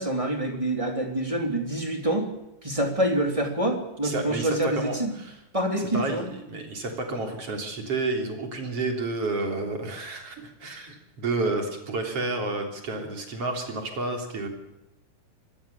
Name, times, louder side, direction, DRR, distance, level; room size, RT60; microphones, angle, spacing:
voice 1, 0.0-2.3 2.6-5.1 5.5-6.3, right 1 dB, 10° right, 3 dB, 3.1 m, -26 dB
voice 2, 4.0-5.3 5.9-14.5, right 2 dB, 45° right, 3 dB, 4.4 m, -30 dB
25.5 x 19.0 x 7.2 m, 0.89 s
omnidirectional pair, 3.7 m